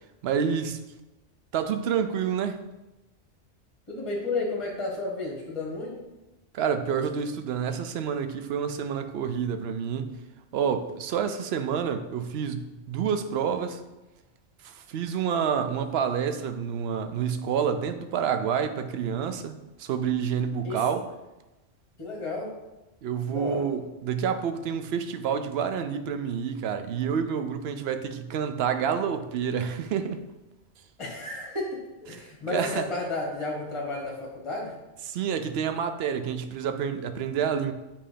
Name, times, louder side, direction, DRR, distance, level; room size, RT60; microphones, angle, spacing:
voice 1, 0.2-0.8 1.5-2.6 6.5-10.1 10.5-13.8 14.6-21.0 23.0-30.2 32.5-32.9 35.1-37.7, right 7 dB, 65° right, 8 dB, 0.7 m, -28 dB
voice 2, 3.9-6.0 20.6-20.8 22.0-22.5 23.3-23.7 31.0-34.8, left 2 dB, 25° left, -1 dB, 1.1 m, -32 dB
7.7 x 2.8 x 5.0 m, 1.0 s
omnidirectional pair, 1.2 m